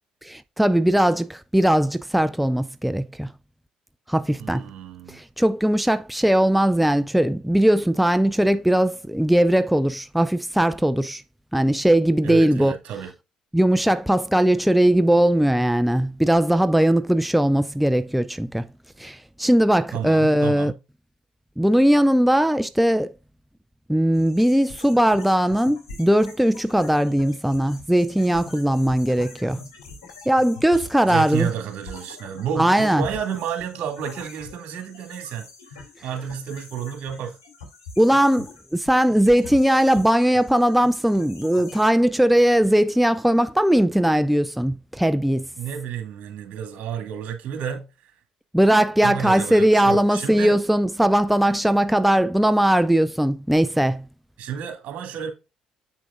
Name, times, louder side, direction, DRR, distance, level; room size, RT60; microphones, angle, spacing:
voice 1, 0.2-3.3 4.1-4.6 5.1-11.2 11.5-12.7 13.5-18.7 19.0-20.7 21.6-23.1 23.9-29.6 30.3-31.5 32.6-33.0 38.0-45.5 48.5-54.0, right 1 dB, 5° right, 0.4 m, -19 dB
voice 2, 4.4-5.2 12.2-13.1 19.9-20.8 31.0-37.4 45.6-48.1 49.0-50.6 54.4-55.3, right 8 dB, 60° right, 2.5 m, -31 dB
sound 1, 24.1-41.9, left 4 dB, 90° left, 2.7 m, -44 dB
7.9 x 6.1 x 2.5 m
hypercardioid pair, 55°, 3 cm